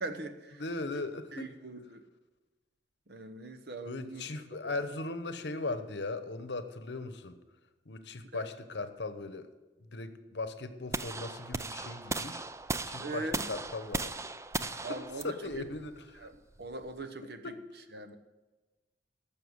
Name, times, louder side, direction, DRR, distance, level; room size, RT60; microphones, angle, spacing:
voice 1, 0.0-0.6 1.3-2.0 3.1-4.3 4.6-4.7 8.3-8.5 13.0-13.5 14.8-15.7 16.2-17.5 17.9-18.2, right 2 dB, 65° right, 8 dB, 1.0 m, -41 dB
voice 2, 0.6-1.5 3.9-7.4 7.9-9.5 9.9-12.4 12.8-14.1 14.6-16.3 17.2-17.6, left 3 dB, 70° left, 11 dB, 1.0 m, -38 dB
sound 1, 10.9-17.0, right 3 dB, 15° right, 0.4 m, -37 dB
12.5 x 7.1 x 8.0 m, 1.2 s
head